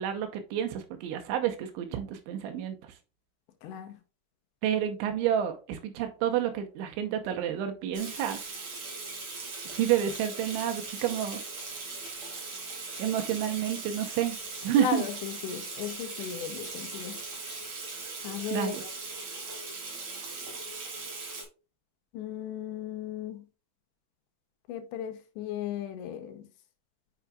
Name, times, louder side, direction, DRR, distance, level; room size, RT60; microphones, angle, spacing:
voice 1, 0.0-2.9 4.6-8.4 9.7-11.4 13.0-14.4 14.6-15.0 18.5-18.8, right 10 dB, 80° right, 3.1 m, -29 dB
voice 2, 3.6-4.0 14.8-17.2 18.2-18.8 22.1-23.4 24.7-26.5, left 9 dB, 85° left, 2.7 m, -36 dB
Water tap faucet / Sink (filling or washing), 7.9-21.4, right 3 dB, 40° right, 2.8 m, -39 dB
sound 1, 10.0-13.7 14.0-18.1, left 3 dB, 45° left, 1.1 m, -54 dB
8.6 x 5.8 x 2.3 m
omnidirectional pair, 5.6 m